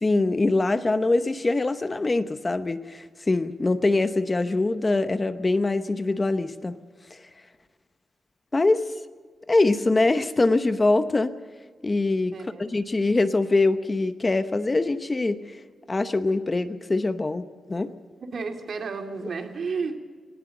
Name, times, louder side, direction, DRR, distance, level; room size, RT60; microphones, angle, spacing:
voice 1, 0.0-6.7 7.1-7.2 8.5-8.8 9.5-11.3 11.8-12.3 12.6-15.6 15.9-17.9, left 2 dB, 20° left, 11 dB, 0.8 m, -23 dB
voice 2, 12.3-12.7 18.2-20.0, right 4 dB, 55° right, 5 dB, 2.2 m, -32 dB
19.5 x 18.5 x 7.7 m, 1.5 s
wide cardioid pair, 155°, 0 cm